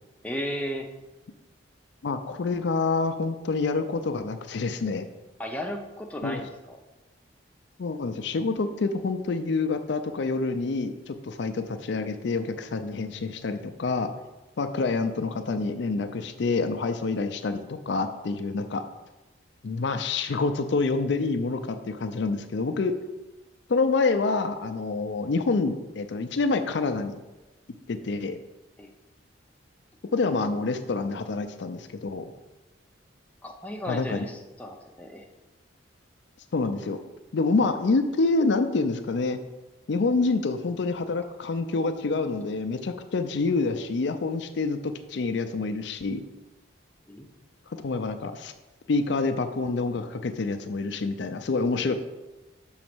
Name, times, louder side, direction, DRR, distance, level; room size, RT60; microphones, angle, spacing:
voice 1, 0.2-0.9 5.4-6.8 28.8-28.9 33.4-35.3 47.1-47.3, equal, 5° left, 2 dB, 0.6 m, -35 dB
voice 2, 2.0-5.1 6.2-6.4 7.8-14.1 14.6-18.8 19.6-23.0 23.7-27.2 27.9-28.4 30.1-32.3 33.9-34.3 36.5-37.0 37.3-39.4 39.9-46.2 47.8-48.5 48.9-51.9, left 3 dB, 60° left, 8 dB, 0.4 m, -27 dB
6.3 x 3.9 x 6.0 m, 1.1 s
head